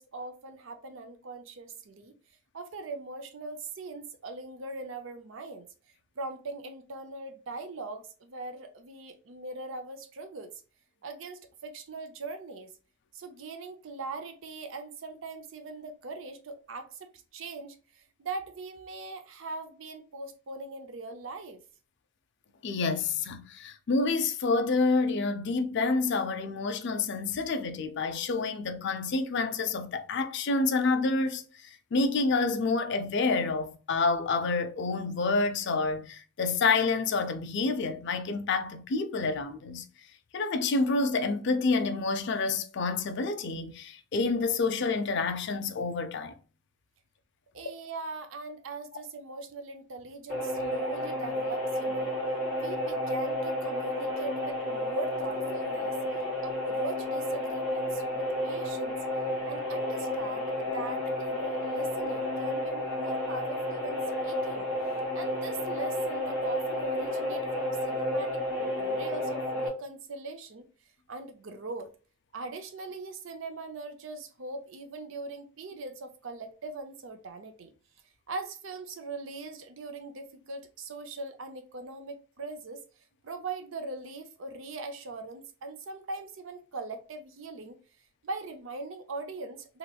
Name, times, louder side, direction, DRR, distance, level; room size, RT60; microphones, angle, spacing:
voice 1, 0.0-2.1 2.5-5.7 6.2-10.5 11.0-12.7 13.1-21.6 47.5-52.1 52.6-55.9 56.4-59.0 59.4-64.7 65.1-68.3 68.6-70.7 71.1-71.9 72.3-77.7 78.3-82.8 83.2-87.8 88.2-89.8, right 3 dB, 65° right, 0.5 m, -40 dB
voice 2, 22.6-31.4 31.9-39.8 40.3-46.3, left 3 dB, 55° left, 0.4 m, -28 dB
sound 1, 50.3-69.7, left 1 dB, 45° right, 1.5 m, -31 dB
3.1 x 2.9 x 2.3 m
head